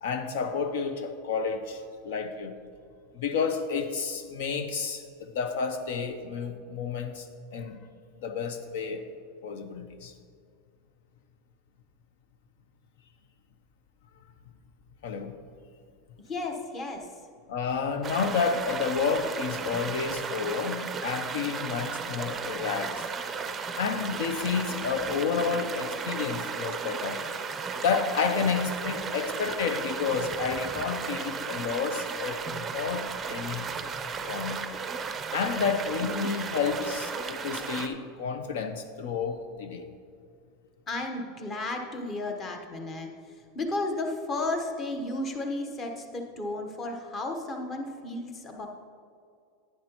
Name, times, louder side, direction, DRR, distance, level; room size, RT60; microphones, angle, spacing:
voice 1, 0.0-2.6 3.1-7.8 8.2-9.1 9.4-10.1 15.0-15.4 17.5-23.1 23.8-27.2 27.8-33.7 34.3-34.6 35.3-39.9, left 5 dB, 75° left, 7 dB, 0.7 m, -30 dB
voice 2, 16.3-17.1 36.8-36.9 40.9-43.1 43.5-48.7, left 2 dB, 25° left, 3 dB, 1.0 m, -33 dB
sound 1, 18.0-37.9, right 5 dB, 15° right, 0.5 m, -35 dB
10.5 x 9.6 x 3.0 m, 2.3 s
supercardioid pair, 155°, 0 cm